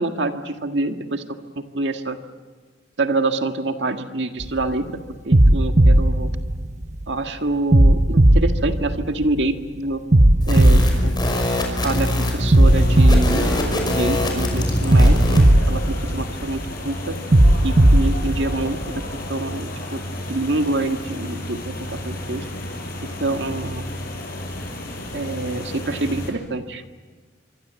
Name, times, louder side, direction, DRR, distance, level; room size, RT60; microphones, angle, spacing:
voice 1, 0.0-2.2 3.0-5.0 5.2-6.3 7.1-10.0 10.5-11.1 11.8-17.2 17.6-19.0 19.3-20.0 20.3-22.4 23.2-23.9 25.1-26.8, right 2 dB, 75° right, 6 dB, 1.9 m, -26 dB
sound 1, 4.4-4.7 5.3-7.1 7.7-9.5 10.1-11.9 12.5-14.3 14.9-16.7 17.3-19.1, right 1 dB, 40° right, 1.1 m, -16 dB
sound 2, 10.4-15.5, left 1 dB, 25° left, 5.7 m, -23 dB
sound 3, 12.6-26.3, left 1 dB, 55° left, 6.7 m, -32 dB
25.0 x 25.0 x 8.3 m, 1.4 s
head